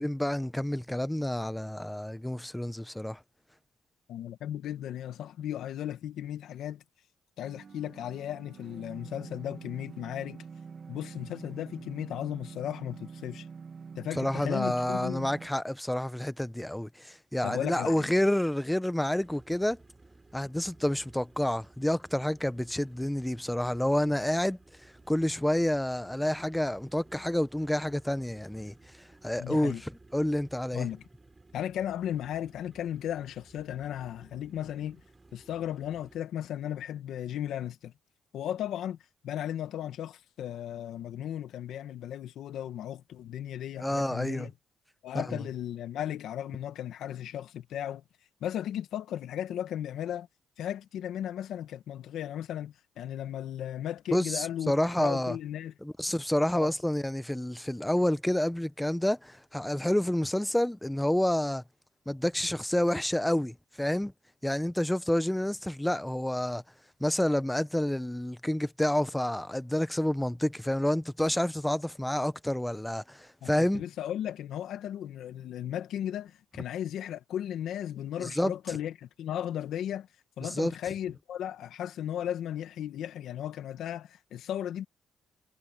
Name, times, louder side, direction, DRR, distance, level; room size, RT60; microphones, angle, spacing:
voice 1, 0.0-3.2 14.2-19.8 20.3-24.6 25.1-28.7 29.2-29.8 30.1-30.9 43.8-44.5 45.1-45.4 54.1-55.4 55.8-61.6 62.1-64.1 64.4-66.6 67.0-73.8 78.2-78.5 80.5-80.7, left 1 dB, 5° left, 1.0 m, -29 dB
voice 2, 4.1-6.8 7.4-10.4 10.9-13.5 14.0-15.3 17.4-18.1 29.4-29.8 30.7-31.0 31.5-35.0 35.3-37.9 38.3-39.0 39.2-44.5 45.0-48.0 48.4-50.3 50.6-55.7 56.5-56.7 73.4-80.1 80.4-84.8, left 10 dB, 80° left, 1.8 m, -36 dB
sound 1, 7.4-15.5, right 5 dB, 45° right, 1.8 m, -46 dB
sound 2, 19.2-36.2, right 3 dB, 20° right, 6.9 m, -57 dB
cardioid pair, 90°, 0 cm